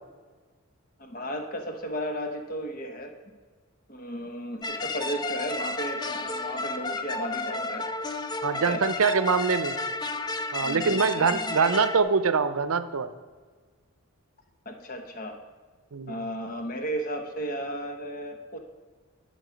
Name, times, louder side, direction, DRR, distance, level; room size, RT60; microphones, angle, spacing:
voice 1, 1.0-3.1 3.9-7.9 8.5-8.8 9.7-9.8 10.6-11.8 14.6-15.3 16.1-18.6, equal, 40° left, 5 dB, 1.0 m, -34 dB
sound 1, 4.6-12.0, left 3 dB, 20° left, 0.3 m, -32 dB
voice 2, 8.4-9.8 10.5-13.1 15.9-16.2, right 5 dB, 75° right, 12 dB, 0.6 m, -24 dB
11.0 x 6.3 x 5.1 m, 1.5 s
head